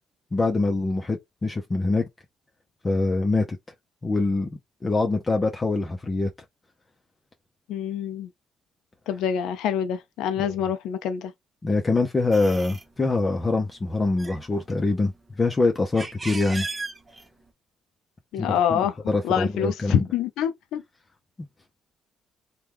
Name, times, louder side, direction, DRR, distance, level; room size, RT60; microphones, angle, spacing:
voice 1, 0.3-2.0 2.8-3.4 4.0-4.5 4.8-6.3 10.4-10.5 11.6-15.1 15.4-16.7 18.4-18.8 19.1-20.0, left 3 dB, 25° left, 0.6 m, -24 dB
voice 2, 7.7-8.3 9.1-11.3 18.3-18.9 19.2-20.8, left 9 dB, 90° left, 0.4 m, -26 dB
sound 1, 12.3-12.9 13.6-13.8 14.0-15.2 15.7-17.5, right 3 dB, 25° right, 0.7 m, -36 dB
3.0 x 2.2 x 3.5 m
cardioid pair, 90°, 0 cm